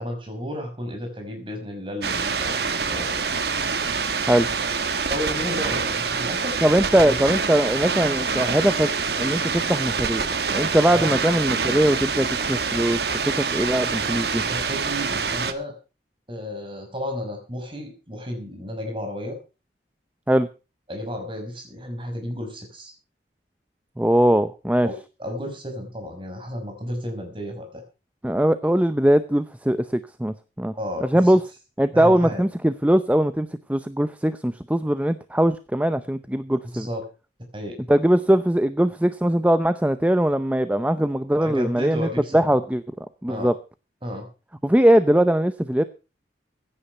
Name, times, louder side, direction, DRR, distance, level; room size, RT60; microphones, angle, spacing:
voice 1, 0.0-3.2 5.1-6.6 6.9-7.2 10.9-11.1 14.5-15.7 16.3-19.4 20.9-22.9 24.8-24.9 25.2-27.8 30.8-31.0 31.9-32.4 36.7-37.0 37.5-37.9 41.4-42.5 43.3-43.5 44.0-44.3, equal, 30° right, 4 dB, 5.3 m, -32 dB
sound 1, 2.0-15.5, right 5 dB, 65° right, 1.5 m, -26 dB
voice 2, 6.6-14.4 20.3-20.5 24.0-24.9 28.2-30.7 31.0-31.4 31.8-36.9 37.9-43.5 44.6-45.8, right 1 dB, 10° right, 12 dB, 0.6 m, -21 dB
16.0 x 9.9 x 5.4 m, 0.33 s
head